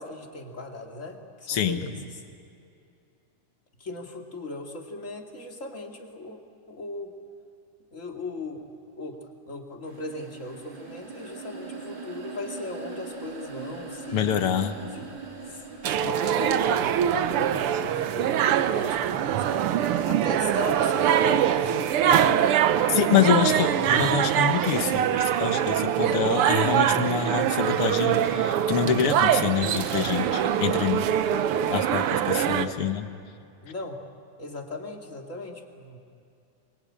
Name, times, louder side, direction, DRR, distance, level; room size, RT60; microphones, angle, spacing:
voice 1, 0.0-2.0 3.8-6.4 6.7-7.1 7.9-9.2 9.5-14.2 14.9-15.1 15.4-19.7 20.1-22.4 22.9-23.0 23.6-23.7 32.6-32.8 33.6-34.0 34.4-36.0, left 2 dB, 25° left, 2 dB, 2.4 m, -37 dB
voice 2, 1.5-1.8 14.1-14.8 22.9-31.1 31.7-33.1, left 8 dB, 55° left, 7 dB, 1.8 m, -26 dB
sound 1, 9.9-17.9, right 4 dB, 35° right, 3.8 m, -41 dB
sound 2, 15.8-32.7, right 10 dB, 85° right, 1.2 m, -23 dB
27.5 x 23.5 x 8.7 m, 2.6 s
omnidirectional pair, 3.6 m